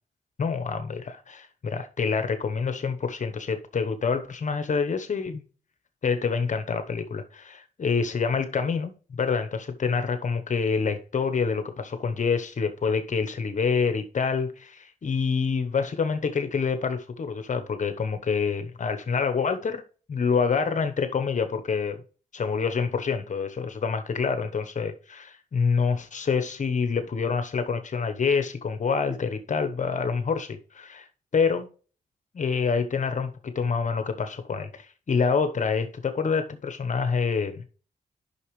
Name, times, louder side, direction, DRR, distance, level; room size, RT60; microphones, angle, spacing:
voice 1, 0.4-5.4 6.0-19.8 20.1-22.0 22.3-31.1 31.3-31.7 32.3-37.7, left 5 dB, 55° left, 1.0 m, -27 dB
8.2 x 5.9 x 3.2 m
cardioid pair, 70°, 15 cm